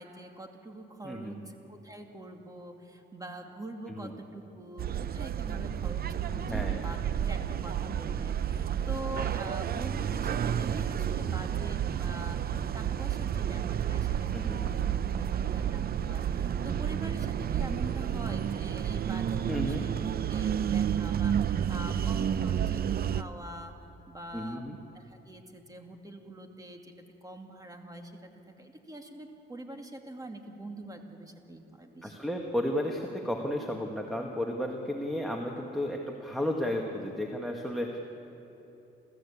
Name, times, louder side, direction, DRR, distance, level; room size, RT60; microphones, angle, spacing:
voice 1, 0.0-14.8 15.2-20.0 20.3-23.7 24.1-24.6 24.9-26.9 27.2-28.2 28.5-32.1, right 1 dB, 20° right, 4 dB, 2.5 m, -44 dB
voice 2, 1.0-1.5 3.9-4.1 6.3-6.8 14.3-14.7 19.5-19.8 24.3-24.8 32.0-38.0, left 1 dB, ahead, 2 dB, 2.0 m, -33 dB
sound 1, 4.8-23.2, right 9 dB, 50° right, 0.7 m, -30 dB
28.0 x 14.5 x 8.6 m, 3.0 s
cardioid pair, 90°, 20 cm